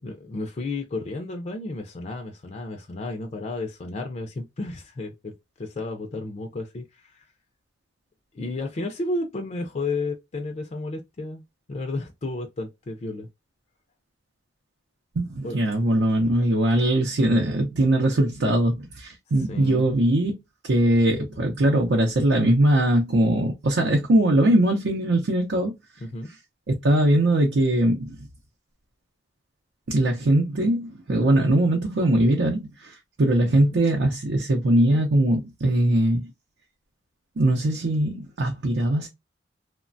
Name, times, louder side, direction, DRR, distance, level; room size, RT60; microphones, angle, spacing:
voice 1, 0.0-5.3 5.6-7.3 8.3-11.4 11.7-13.3 15.4-15.6 19.5-19.8 26.0-26.3 33.4-33.8, left 2 dB, 40° left, 0.4 m, -32 dB
voice 2, 15.1-20.3 20.6-25.8 26.7-28.3 29.9-36.3 37.4-39.1, right 1 dB, 80° right, 0.6 m, -21 dB
3.1 x 2.1 x 2.5 m
head